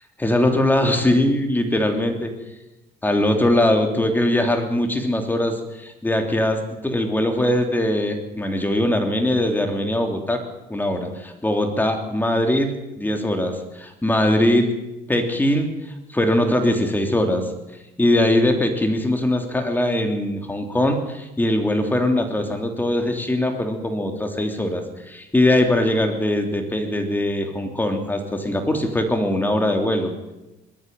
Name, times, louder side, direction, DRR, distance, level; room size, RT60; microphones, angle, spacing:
voice 1, 0.2-2.3 3.0-10.4 10.7-14.7 15.1-15.7 16.1-17.5 18.0-30.1, left 1 dB, 10° left, 4 dB, 3.2 m, -21 dB
21.0 x 13.5 x 9.2 m, 1.0 s
cardioid pair, 110°, 17 cm